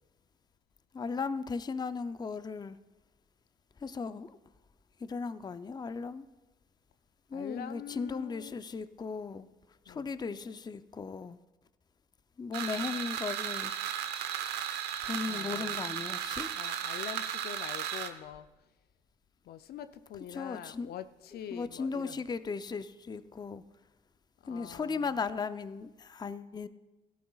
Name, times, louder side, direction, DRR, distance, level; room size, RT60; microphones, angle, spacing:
voice 1, 0.9-2.8 3.8-4.4 5.0-6.3 7.3-9.5 9.9-11.4 12.4-13.7 15.0-16.5 20.3-20.9 21.5-23.6 24.5-26.7, left 5 dB, 25° left, 0.5 m, -36 dB
voice 2, 7.3-8.6 9.9-10.1 15.3-15.8 16.5-18.5 19.4-22.3 24.4-25.3, left 10 dB, 70° left, 0.6 m, -45 dB
sound 1, 12.5-18.1, right 10 dB, 85° right, 0.9 m, -35 dB
16.5 x 12.5 x 2.4 m
supercardioid pair, 70°, 17 cm